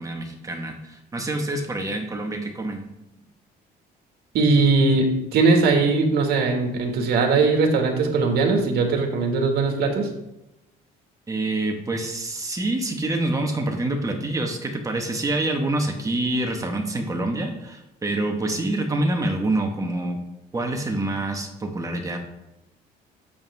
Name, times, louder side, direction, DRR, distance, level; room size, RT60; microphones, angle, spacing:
voice 1, 0.0-2.8 11.3-20.2 20.5-22.2, right 2 dB, 20° right, 3 dB, 1.5 m, -26 dB
voice 2, 4.3-10.1, right 3 dB, 70° right, 3 dB, 2.0 m, -20 dB
8.7 x 7.3 x 3.6 m, 0.88 s
cardioid pair, 110°, 17 cm